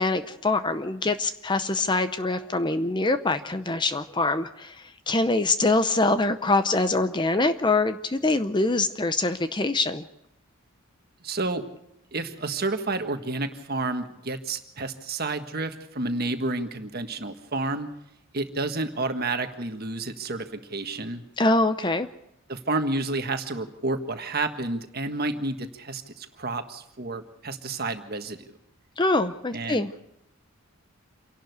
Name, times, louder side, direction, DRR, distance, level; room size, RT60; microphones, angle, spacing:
voice 1, 0.0-4.8 5.1-10.0 21.4-22.1 29.0-29.9, left 2 dB, 20° left, 11 dB, 0.7 m, -24 dB
voice 2, 11.2-11.6 12.1-17.9 18.3-21.2 22.5-28.5 29.5-29.9, right 2 dB, 45° right, 7 dB, 1.6 m, -30 dB
27.5 x 11.5 x 8.1 m, 0.82 s
head